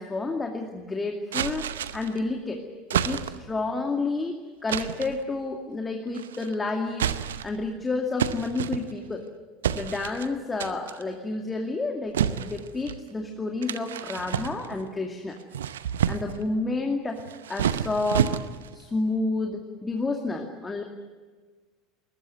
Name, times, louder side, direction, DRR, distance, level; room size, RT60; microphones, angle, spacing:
voice 1, 0.0-1.6 1.9-2.6 2.9-7.1 7.4-9.3 9.7-15.4 16.1-17.2 17.5-18.3 18.7-20.8, left 3 dB, 15° left, 3 dB, 2.4 m, -30 dB
sound 1, 1.3-2.2 2.9-3.6 4.7-5.2 6.1-6.5 6.9-7.6 8.2-9.2 9.6-10.3 10.6-11.0 12.1-13.0 13.6-14.9 15.4-16.5 17.2-18.8, right 9 dB, 75° right, 0.8 m, -29 dB
21.5 x 20.5 x 9.6 m, 1.4 s
figure-of-eight pair, 70°, 0 cm